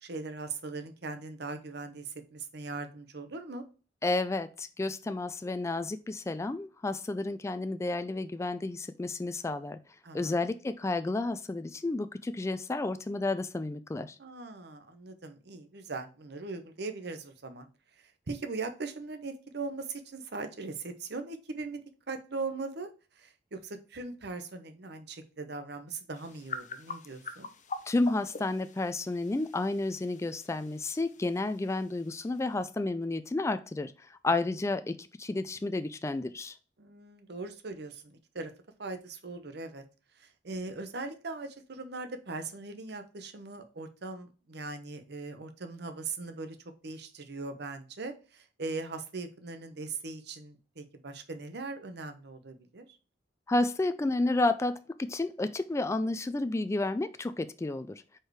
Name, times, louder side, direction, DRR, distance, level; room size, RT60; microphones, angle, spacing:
voice 1, 0.0-3.6 10.0-10.4 14.2-17.7 18.0-21.8 22.1-22.9 23.2-27.5 36.8-38.5 38.8-39.8 40.2-46.6 46.8-52.9, right 3 dB, 65° right, 0.9 m, -40 dB
voice 2, 4.0-9.8 10.1-14.2 27.9-36.6 53.5-57.9, left 2 dB, 15° left, 0.3 m, -31 dB
sound 1, 26.1-32.6, left 4 dB, 45° left, 0.7 m, -45 dB
4.8 x 4.5 x 4.6 m
head